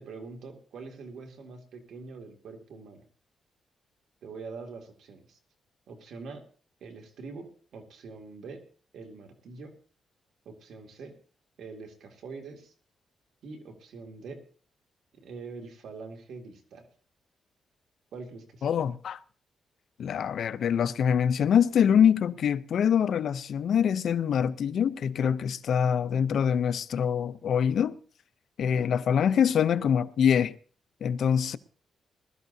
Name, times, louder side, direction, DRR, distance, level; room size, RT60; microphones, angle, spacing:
voice 1, 0.0-3.1 4.2-5.4 5.9-6.4 6.8-8.6 8.9-9.7 10.5-11.1 11.6-12.7 13.4-14.4 15.2-16.9 18.1-18.7, right 4 dB, 80° right, 2.3 m, -44 dB
voice 2, 18.6-19.2 20.0-28.0 28.6-30.5 31.0-31.6, left 8 dB, 70° left, 0.6 m, -24 dB
20.5 x 13.0 x 2.7 m
cardioid pair, 105°, 0 cm